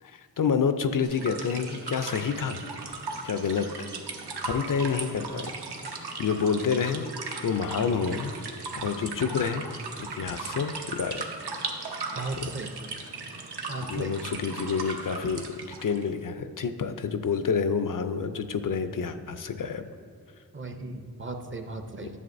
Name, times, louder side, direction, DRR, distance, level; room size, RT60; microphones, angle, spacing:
voice 1, 0.0-2.6 3.2-3.7 4.4-5.5 6.2-7.1 7.4-8.3 8.8-9.6 10.1-11.2 13.9-19.9, left 6 dB, 55° left, 10 dB, 0.5 m, -28 dB
sound 1, 1.0-16.0, right 3 dB, 75° right, 1.0 m, -37 dB
voice 2, 12.2-12.8 13.7-14.2 20.5-22.2, right 2 dB, 30° right, 5 dB, 0.6 m, -36 dB
11.0 x 7.2 x 2.6 m, 2.2 s
wide cardioid pair, 85°, 40 cm